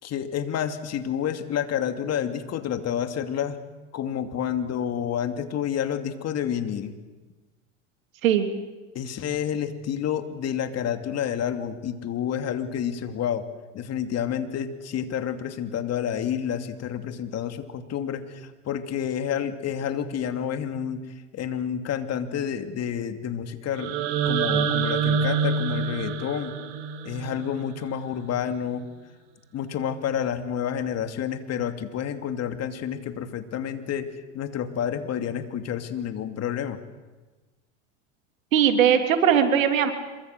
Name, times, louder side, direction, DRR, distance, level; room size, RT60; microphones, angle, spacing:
voice 1, 0.0-3.6 3.9-6.9 8.9-13.5 13.7-21.0 21.3-24.0 24.2-26.6 27.0-28.8 29.5-36.8, left 9 dB, 40° left, 8 dB, 2.8 m, -29 dB
sound 1, 23.8-27.8, right 6 dB, 65° right, 3.5 m, -26 dB
voice 2, 38.5-39.9, right 8 dB, 80° right, 7 dB, 3.3 m, -19 dB
26.5 x 23.5 x 7.9 m, 1.2 s
hypercardioid pair, 95°, 39 cm